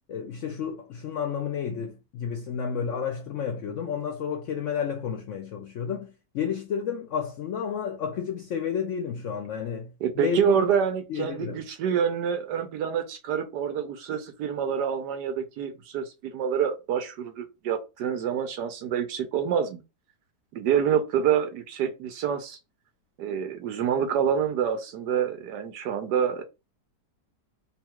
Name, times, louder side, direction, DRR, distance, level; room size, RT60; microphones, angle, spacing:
voice 1, 0.1-9.9 10.2-10.7 11.1-11.6, left 7 dB, 80° left, 0.7 m, -31 dB
voice 2, 10.0-19.8 20.5-22.6 23.2-26.4, right 8 dB, 75° right, 1.2 m, -27 dB
3.5 x 2.3 x 4.4 m
omnidirectional pair, 1.9 m